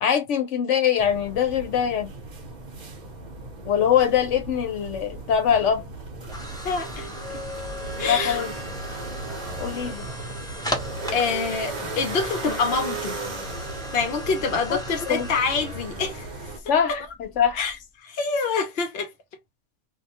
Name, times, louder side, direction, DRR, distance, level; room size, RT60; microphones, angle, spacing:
voice 1, 0.0-2.1 3.6-5.8 8.0-8.5 9.6-10.1 14.7-15.3 16.7-17.6, left 8 dB, 85° left, 1.1 m, -23 dB
sound 1, 1.0-16.6, right 3 dB, 45° right, 0.7 m, -36 dB
sound 2, 5.1-17.8, left 1 dB, 5° left, 0.5 m, -37 dB
voice 2, 6.6-7.4 8.0-8.4 11.1-13.2 13.9-16.3 17.6-17.7 18.0-19.1, left 4 dB, 60° left, 0.9 m, -26 dB
2.4 x 2.2 x 2.8 m
omnidirectional pair, 1.2 m